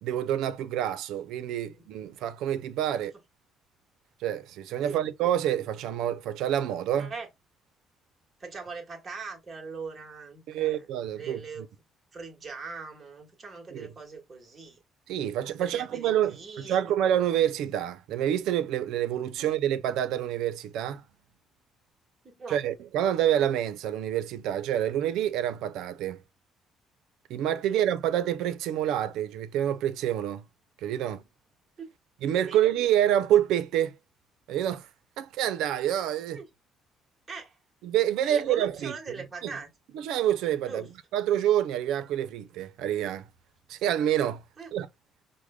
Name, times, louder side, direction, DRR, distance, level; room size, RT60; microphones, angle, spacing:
voice 1, 0.0-3.1 4.2-7.1 10.5-11.4 13.7-13.9 15.1-21.0 22.5-26.2 27.3-30.4 30.8-31.2 32.2-34.0 34.5-34.9 35.2-36.4 37.8-39.2 39.4-39.5 39.9-40.9 41.1-43.3 43.7-44.4 44.7-44.9, right 11 dB, 80° right, 0.5 m, -27 dB
voice 2, 6.9-7.3 8.4-10.9 11.2-11.7 12.1-14.8 15.6-17.0 19.4-19.5 22.2-22.6 27.7-27.8 31.0-31.1 31.8-31.9 32.5-32.6 36.3-36.5 37.3-37.6 38.2-39.7 40.6-40.9 44.6-44.7, right 4 dB, 20° right, 1.3 m, -41 dB
4.9 x 2.1 x 2.2 m
cardioid pair, 155°, 0 cm